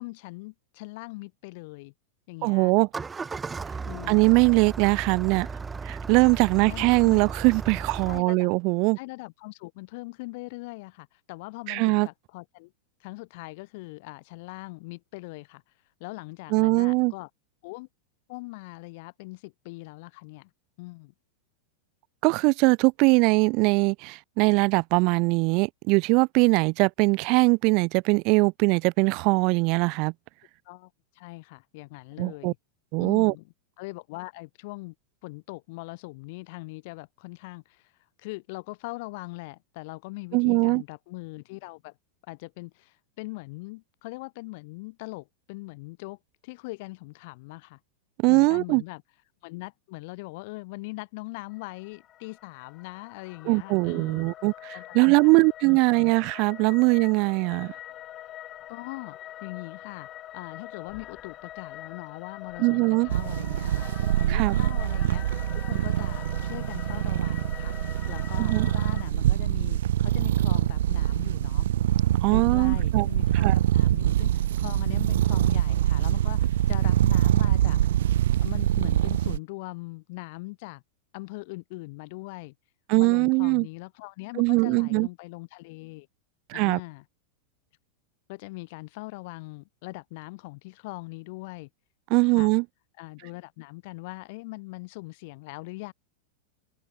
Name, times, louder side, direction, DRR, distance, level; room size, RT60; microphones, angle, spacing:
voice 1, 0.0-1.9 2.3-2.7 3.8-4.3 6.2-6.4 6.7-7.2 8.1-8.5 9.0-12.7 13.0-15.6 16.0-17.3 17.6-17.9 18.3-20.5 20.8-21.1 28.7-28.8 30.6-32.6 33.0-33.5 33.8-34.9 35.2-37.9 38.2-41.9 42.3-46.2 46.4-47.8 48.3-49.0 49.4-54.3 54.7-56.0 58.7-65.4 65.7-71.7 72.3-77.8 78.4-80.8 81.1-82.5 83.0-86.1 86.5-87.0 88.3-91.7 92.2-92.5 93.0-95.9, left 25 dB, 50° left, 2.7 m, -41 dB
voice 2, 2.4-2.9 4.1-5.5 5.8-9.0 11.7-12.1 16.5-17.1 22.2-30.1 32.2-32.5 32.9-33.3 40.3-40.8 48.2-48.8 53.5-57.7 62.6-63.1 64.3-64.6 68.4-68.7 72.2-73.1 73.4-73.5 82.9-83.7 84.4-85.1 86.5-86.8 92.1-92.6, right 29 dB, 45° right, 0.8 m, -21 dB
Engine starting, 2.8-8.2, right 4 dB, 15° right, 1.8 m, -35 dB
sound 1, 51.5-69.0, left 13 dB, 30° left, 3.1 m, -44 dB
sound 2, 63.1-79.4, right 12 dB, 60° right, 0.3 m, -24 dB
figure-of-eight pair, 90°, 0 cm